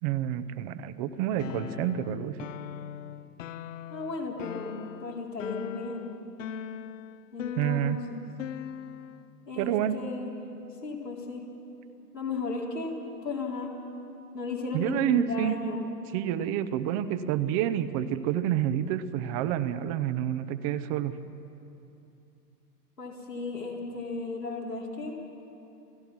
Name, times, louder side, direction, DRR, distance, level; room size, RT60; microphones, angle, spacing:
voice 1, 0.0-2.5 7.6-8.0 9.6-10.0 14.7-15.5 16.1-21.1, right 11 dB, 25° right, 13 dB, 0.6 m, -28 dB
sound 1, 1.4-9.3, left 10 dB, 50° left, 0.7 m, -40 dB
voice 2, 3.9-6.1 7.3-8.2 9.5-10.4 10.8-11.5 12.1-13.7 14.3-15.8 23.0-25.2, left 3 dB, 90° left, -3 dB, 4.1 m, -35 dB
29.5 x 16.0 x 6.0 m, 2.8 s
figure-of-eight pair, 110°, 48 cm